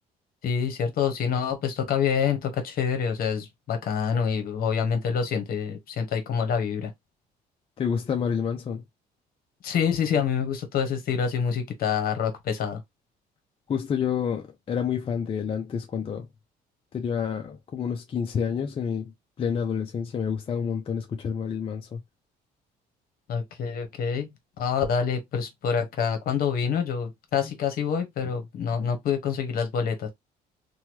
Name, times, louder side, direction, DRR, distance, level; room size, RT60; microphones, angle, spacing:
voice 1, 0.4-6.9 9.6-12.8 23.3-24.3 24.6-30.1, left 7 dB, 60° left, 1.0 m, -26 dB
voice 2, 7.8-8.8 13.7-16.3 16.9-19.1 19.4-22.0 27.4-27.5, left 7 dB, 35° left, 0.5 m, -28 dB
2.9 x 2.2 x 3.0 m
cardioid pair, 110°, 17 cm